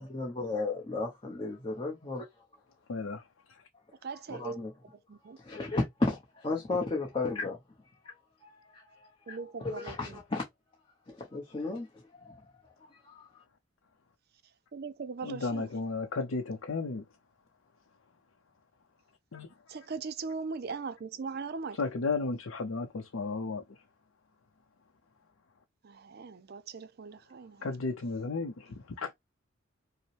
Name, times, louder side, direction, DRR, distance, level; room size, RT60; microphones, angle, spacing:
voice 1, 0.0-2.2 4.3-4.7 5.4-7.6 8.0-8.1 8.4-10.4 11.1-12.5 12.9-13.3, left 3 dB, 25° left, 0.8 m, -34 dB
voice 2, 2.9-3.2 15.2-17.0 19.3-19.5 21.8-23.6 27.6-29.1, left 3 dB, 85° left, 0.6 m, -33 dB
voice 3, 4.0-4.6 5.1-5.4 9.3-10.2 14.7-15.7 19.7-21.8 25.8-27.7, right 4 dB, 50° right, 0.5 m, -39 dB
5.2 x 2.1 x 3.2 m
head